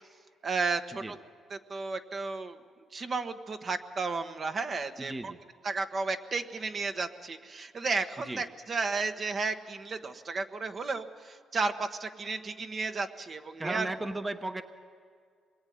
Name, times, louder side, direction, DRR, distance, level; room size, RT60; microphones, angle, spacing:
voice 1, 0.4-1.1 1.5-2.6 2.9-5.3 5.6-13.9, right 4 dB, 45° right, 7 dB, 1.3 m, -33 dB
voice 2, 5.0-5.4 8.3-8.4 13.6-14.6, right 2 dB, 15° right, 8 dB, 1.1 m, -35 dB
26.5 x 21.5 x 9.4 m, 2.1 s
cardioid pair, 90°, 0 cm